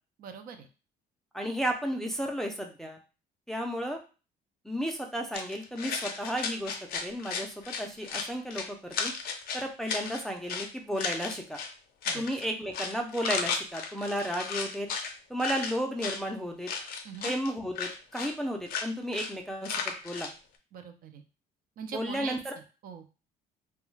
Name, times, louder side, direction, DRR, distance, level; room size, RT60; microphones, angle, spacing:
voice 1, 0.2-0.7 12.1-12.2 17.0-17.3 20.7-21.2 21.8-22.4 22.8-23.1, right 6 dB, 60° right, 7 dB, 0.5 m, -41 dB
voice 2, 1.3-3.0 3.5-4.0 4.6-6.7 7.0-9.1 9.5-11.6 12.1-14.9 15.3-16.7 17.2-20.3 21.9-22.5, equal, ahead, 2 dB, 0.4 m, -33 dB
sound 1, 5.3-10.7 11.0-11.7 12.0-12.5 12.7-15.1 15.4-16.2 16.7-17.5 17.8-18.4 18.7-18.9 19.1-19.3 19.6-20.3, left 5 dB, 60° left, 0.5 m, -35 dB
2.3 x 2.2 x 3.1 m, 0.33 s
cardioid pair, 110°, 17 cm